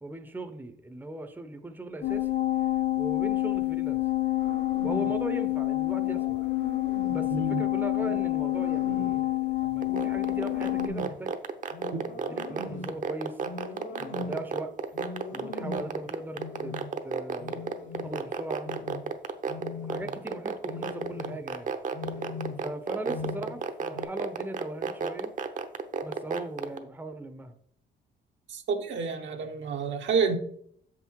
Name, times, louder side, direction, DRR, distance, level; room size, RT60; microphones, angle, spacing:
voice 1, 0.0-2.3 3.0-4.0 4.8-6.5 7.1-11.3 12.1-13.5 14.0-14.8 15.3-18.7 19.8-21.7 22.6-25.4 26.0-27.5, right 2 dB, 10° right, 0.7 m, -39 dB
sound 1, 2.0-10.9, left 16 dB, 55° left, 1.1 m, -28 dB
sound 2, 4.4-5.2 6.0-7.3 8.0-9.3 9.8-11.2 11.7-13.0 13.4-14.5 14.9-16.0 16.4-16.9 17.4-18.3 18.6-19.1 19.5-20.2 20.7-21.5 21.9-22.8 23.1-23.6 23.9-24.0, left 3 dB, 80° left, 1.8 m, -40 dB
voice 2, 7.3-7.6 28.5-30.4, right 5 dB, 70° right, 1.1 m, -29 dB
sound 3, 9.8-26.8, right 6 dB, 40° right, 0.8 m, -31 dB
6.8 x 5.8 x 4.6 m
cardioid pair, 90°, 20 cm